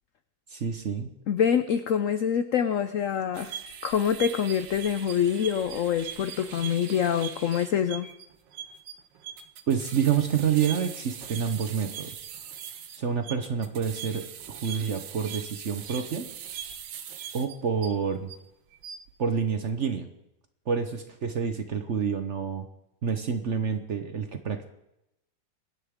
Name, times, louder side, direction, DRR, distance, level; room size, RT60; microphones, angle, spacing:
voice 1, 0.5-1.1 9.7-12.3 13.0-16.3 17.3-18.3 19.2-20.1 20.7-22.7 23.0-24.7, right 7 dB, 50° right, 8 dB, 0.9 m, -28 dB
voice 2, 1.3-3.5 3.8-8.1, left 8 dB, 85° left, 11 dB, 0.7 m, -25 dB
sound 1, 3.3-18.4 18.7-19.1, right 9 dB, 75° right, 1.6 m, -41 dB
23.5 x 10.0 x 3.6 m, 0.86 s
omnidirectional pair, 2.1 m